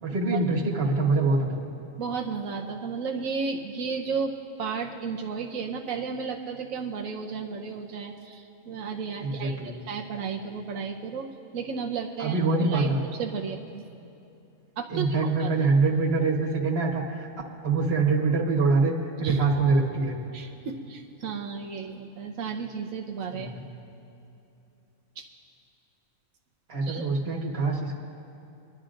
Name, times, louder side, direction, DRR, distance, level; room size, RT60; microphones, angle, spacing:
voice 1, 0.0-1.7 9.2-9.8 12.2-13.0 14.9-17.3 17.6-20.1 23.4-23.7 26.7-28.0, right 3 dB, 50° right, -2 dB, 1.6 m, -24 dB
voice 2, 2.0-12.9 13.2-13.8 14.8-15.5 19.2-19.4 20.3-23.5 25.2-25.3 26.8-27.1, right 5 dB, 90° right, 1 dB, 1.1 m, -33 dB
25.0 x 11.0 x 2.5 m, 2.8 s
omnidirectional pair, 1.4 m